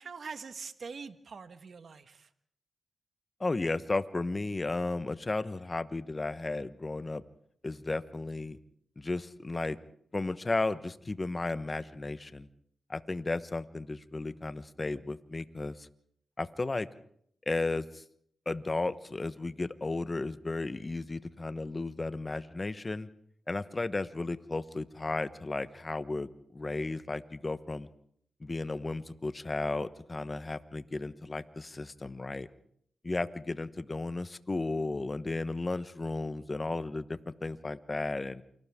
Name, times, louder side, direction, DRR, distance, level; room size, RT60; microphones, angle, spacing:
voice 1, 0.0-2.3, right 5 dB, 65° right, 10 dB, 1.4 m, -44 dB
voice 2, 3.4-7.2 7.6-8.6 9.0-9.8 10.1-12.5 12.9-15.9 16.4-16.9 17.5-18.0 18.5-23.1 23.5-27.9 28.4-32.5 33.0-38.4, left 2 dB, 30° left, 13 dB, 1.1 m, -34 dB
29.0 x 25.5 x 3.7 m, 0.67 s
cardioid pair, 80°, 0 cm